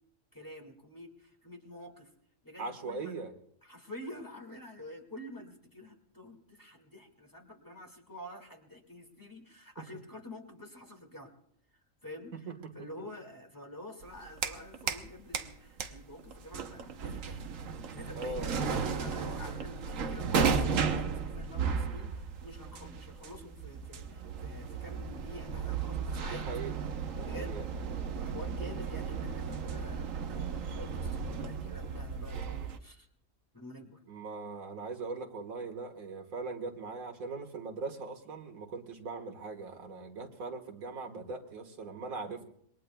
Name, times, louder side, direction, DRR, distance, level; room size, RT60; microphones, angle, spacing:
voice 1, 0.3-2.1 2.4-3.2 3.6-11.3 12.0-12.5 12.7-17.5 17.9-26.5 27.2-27.6 28.2-33.1 33.5-34.0, left 1 dB, 15° left, 3 dB, 2.1 m, -48 dB
voice 2, 2.6-3.3 12.3-12.7 18.1-18.9 26.2-26.7 27.2-27.7 28.7-29.2 34.1-42.5, right 3 dB, 90° right, 3 dB, 2.0 m, -40 dB
sound 1, 14.0-15.1 15.3-32.8, right 5 dB, 70° right, 1.3 m, -35 dB
27.0 x 22.0 x 2.3 m, 0.68 s
omnidirectional pair, 1.4 m